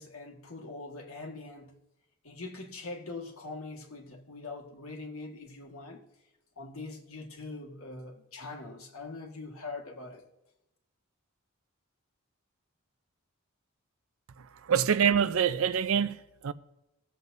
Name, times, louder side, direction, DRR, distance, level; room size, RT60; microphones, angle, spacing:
voice 1, 0.0-1.7 2.2-6.0 6.6-10.2, left 3 dB, 85° left, 1.7 m, -42 dB
voice 2, 14.7-16.2 16.4-16.5, right 7 dB, 75° right, 0.5 m, -25 dB
19.5 x 7.6 x 2.7 m
head